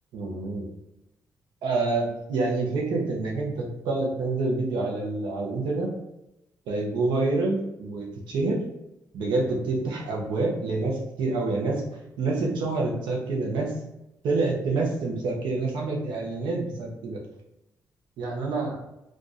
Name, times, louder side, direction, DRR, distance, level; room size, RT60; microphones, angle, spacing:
voice 1, 0.1-0.7 1.6-5.9 6.7-8.6 9.1-11.8 12.2-13.7 14.2-17.2 18.2-18.8, right 3 dB, 85° right, -1 dB, 0.8 m, -27 dB
2.5 x 2.4 x 4.0 m, 0.89 s
supercardioid pair, 50°, 8 cm